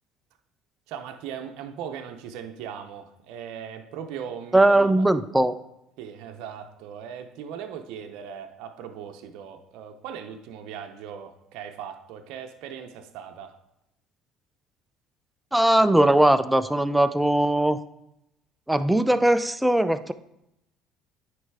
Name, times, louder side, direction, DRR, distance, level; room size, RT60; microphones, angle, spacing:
voice 1, 0.9-5.1 6.0-13.5, right 8 dB, 75° right, 6 dB, 0.7 m, -39 dB
voice 2, 4.5-5.6 15.5-17.8 18.7-20.1, right 1 dB, 5° right, 12 dB, 0.4 m, -20 dB
9.2 x 3.2 x 4.7 m, 0.84 s
supercardioid pair, 100°, 0 cm